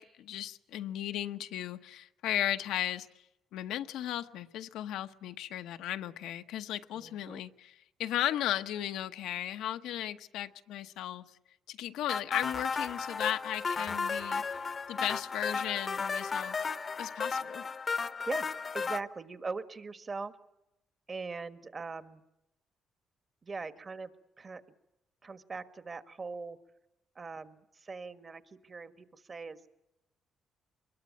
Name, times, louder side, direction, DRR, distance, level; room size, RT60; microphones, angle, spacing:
voice 1, 0.0-3.1 3.5-11.3 11.7-14.6 14.9-16.7 17.0-17.7, left 12 dB, 90° left, 9 dB, 0.9 m, -36 dB
voice 2, 7.0-7.4 13.9-14.0 18.2-18.5 18.7-20.3 21.1-22.2 23.4-24.6 25.2-26.6 27.1-29.6, right 4 dB, 35° right, 10 dB, 1.5 m, -41 dB
sound 1, 12.1-19.0, left 5 dB, 40° left, 0.8 m, -34 dB
24.0 x 21.5 x 9.4 m, 0.91 s
cardioid pair, 90°, 0 cm